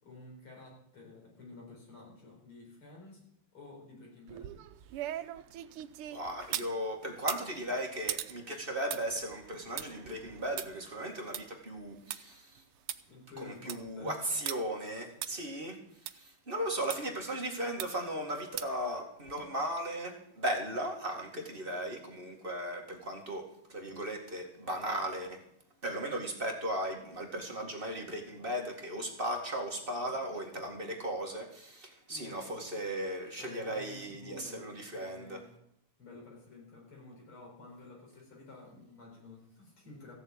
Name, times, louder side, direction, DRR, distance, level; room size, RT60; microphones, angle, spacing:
voice 1, 0.0-3.2 3.5-4.6 13.1-14.2 32.1-32.9 33.4-35.6 36.0-40.2, left 3 dB, 75° left, -2 dB, 5.6 m, -51 dB
sound 1, 4.3-6.7 7.2-12.2 12.6-12.7 12.9-13.0 13.4-13.9 14.5-14.6 15.2-15.3 16.1-16.2 16.9-17.0 17.8-18.1 18.6-18.9 19.3-19.4, right 12 dB, 80° right, 1.6 m, -40 dB
voice 2, 6.1-12.5 13.4-15.8 16.1-25.4 25.8-35.4, right 1 dB, 25° right, 0 dB, 2.1 m, -37 dB
15.0 x 7.3 x 8.7 m, 0.71 s
omnidirectional pair, 2.4 m